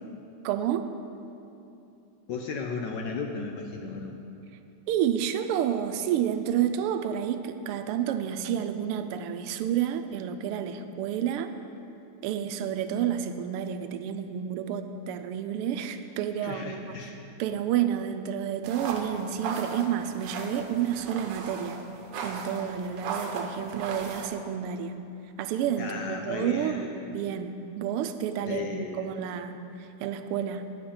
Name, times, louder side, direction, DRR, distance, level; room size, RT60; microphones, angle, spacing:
voice 1, 0.4-0.9 4.9-11.5 12.2-17.0 17.4-21.8 22.2-24.9 25.4-29.6 30.0-30.6, right 9 dB, 90° right, 8 dB, 1.5 m, -30 dB
voice 2, 2.3-4.2 16.4-17.2 25.8-26.8 28.5-29.1, left 4 dB, 70° left, 3 dB, 1.1 m, -35 dB
sound 1, 18.6-24.3, right 4 dB, 65° right, 1.3 m, -37 dB
9.2 x 7.8 x 5.7 m, 2.8 s
omnidirectional pair, 2.4 m